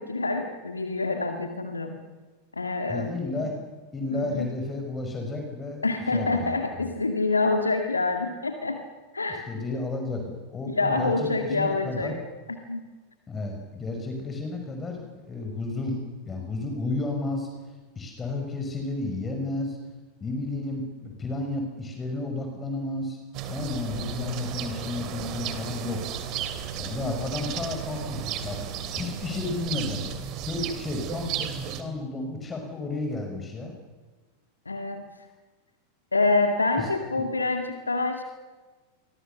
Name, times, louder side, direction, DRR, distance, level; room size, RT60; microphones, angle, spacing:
voice 1, 0.0-2.0 2.5-3.5 4.1-4.5 5.8-8.8 9.1-9.4 10.7-12.2 12.5-12.9 34.7-35.1 36.1-38.2, left 3 dB, 80° left, 5 dB, 2.1 m, -26 dB
voice 2, 2.9-3.5 3.9-6.5 9.5-12.1 13.3-16.0 16.3-17.5 18.0-19.8 20.2-23.2 23.5-26.0 26.8-28.6 28.9-30.1 30.4-33.7 36.8-36.9, left 2 dB, 20° left, 3 dB, 6.0 m, -32 dB
sound 1, 23.3-31.8, right 8 dB, 40° right, 2.9 m, -34 dB
28.5 x 24.5 x 7.1 m, 1.3 s
figure-of-eight pair, 90°, 0 cm